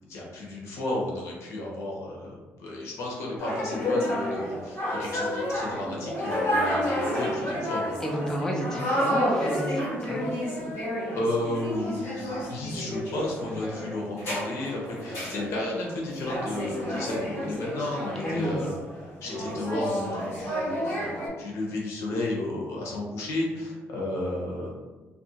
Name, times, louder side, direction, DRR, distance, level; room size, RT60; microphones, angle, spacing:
voice 1, 0.1-7.9 11.1-18.8 19.2-24.7, left 1 dB, 70° left, -3 dB, 0.9 m, -33 dB
sound 1, 3.4-21.3, equal, 50° left, 1.4 m, -30 dB
voice 2, 8.0-10.3 18.2-18.7, equal, 10° left, 0 dB, 0.4 m, -31 dB
2.7 x 2.5 x 2.7 m, 1.3 s
cardioid pair, 125°, 5 cm